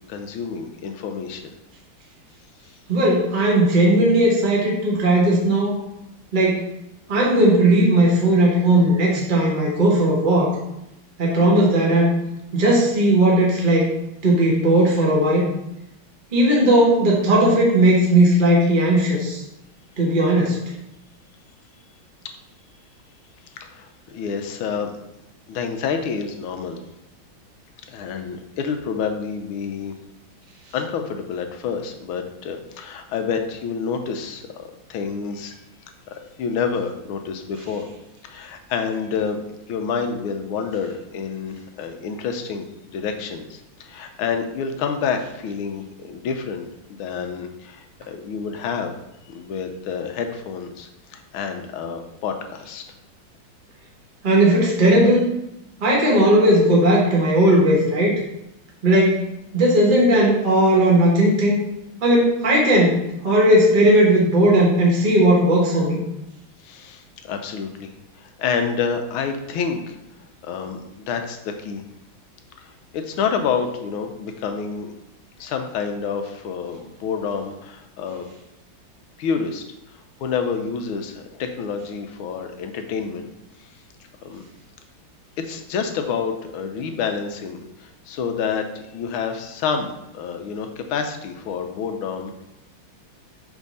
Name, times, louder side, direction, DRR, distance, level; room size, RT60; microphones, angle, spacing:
voice 1, 0.1-1.5 23.6-24.9 25.5-26.8 27.9-29.9 30.7-35.6 36.1-37.9 38.2-39.4 39.7-42.7 42.9-46.7 47.0-48.9 49.3-52.8 66.6-70.0 70.4-71.8 72.9-74.9 75.4-78.2 79.2-79.6 80.2-83.3 84.2-84.4 85.4-92.4, left 6 dB, 85° left, 6 dB, 1.5 m, -28 dB
voice 2, 2.9-5.8 6.3-6.7 7.1-10.5 11.2-12.1 12.5-13.9 14.2-15.4 16.3-19.4 20.0-20.6 54.2-55.3 55.8-58.1 58.8-59.2 59.5-61.6 62.0-66.0, right 1 dB, 30° right, -3 dB, 1.1 m, -17 dB
5.1 x 3.6 x 5.3 m, 0.85 s
omnidirectional pair, 2.2 m